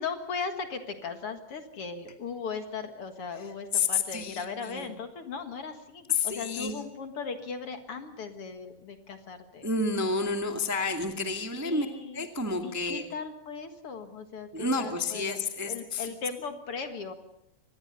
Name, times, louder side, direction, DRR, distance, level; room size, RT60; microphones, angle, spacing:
voice 1, 0.0-9.7 11.6-12.3 12.6-17.1, left 5 dB, 50° left, 7 dB, 2.4 m, -38 dB
voice 2, 3.7-4.9 6.1-6.8 9.6-11.9 12.1-13.0 14.5-16.1, left 3 dB, 5° right, 5 dB, 1.4 m, -30 dB
25.0 x 19.5 x 6.7 m, 0.80 s
omnidirectional pair, 3.5 m